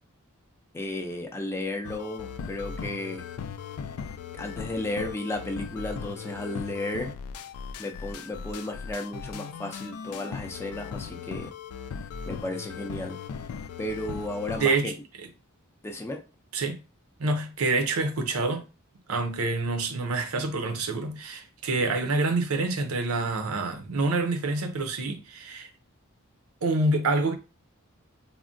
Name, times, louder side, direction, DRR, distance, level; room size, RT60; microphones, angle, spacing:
voice 1, 0.7-3.3 4.3-7.1 7.8-11.5 12.3-13.2 13.8-14.9 15.8-16.2, left 1 dB, 10° left, 0.4 m, -34 dB
sound 1, 1.8-14.8, left 6 dB, 85° left, 0.3 m, -38 dB
voice 2, 14.6-14.9 16.5-16.8 17.2-18.6 19.1-25.7 26.6-27.3, right 3 dB, 75° right, 0.6 m, -27 dB
3.5 x 2.1 x 2.5 m
head